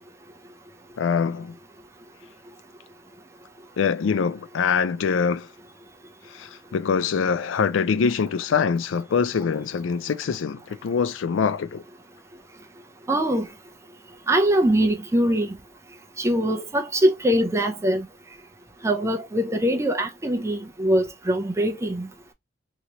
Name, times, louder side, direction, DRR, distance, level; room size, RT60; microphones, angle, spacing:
voice 1, 1.0-1.6 3.8-5.5 6.3-11.8, left 6 dB, 75° left, 0.4 m, -24 dB
voice 2, 13.1-13.5 14.3-15.5 16.2-18.1 18.8-22.1, right 1 dB, 15° right, 0.4 m, -22 dB
2.9 x 2.9 x 2.8 m
head